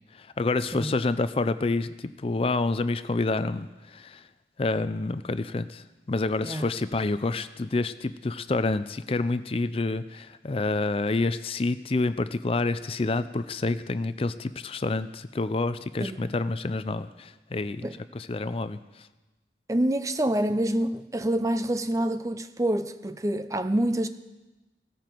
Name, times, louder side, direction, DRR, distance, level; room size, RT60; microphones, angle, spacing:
voice 1, 0.1-4.2 4.6-17.9 18.1-18.8, left 3 dB, 30° left, 0.4 m, -28 dB
voice 2, 19.7-24.1, right 1 dB, 20° right, 0.5 m, -27 dB
17.0 x 14.5 x 4.5 m
head